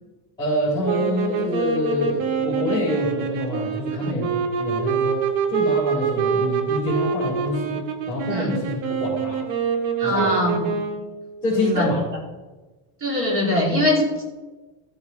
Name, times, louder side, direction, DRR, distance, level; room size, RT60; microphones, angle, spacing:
voice 1, 0.4-5.2 5.5-7.8 8.1-9.4 10.0-10.3 11.4-12.0, left 1 dB, 10° left, -11 dB, 4.0 m, -26 dB
sound 1, 0.8-11.2, right 6 dB, 80° right, 2.2 m, -25 dB
voice 2, 10.0-10.8 11.5-11.9 13.0-14.1, left 1 dB, 25° right, -3 dB, 3.6 m, -22 dB
15.0 x 8.1 x 3.6 m, 1.2 s
cardioid pair, 165°, 47 cm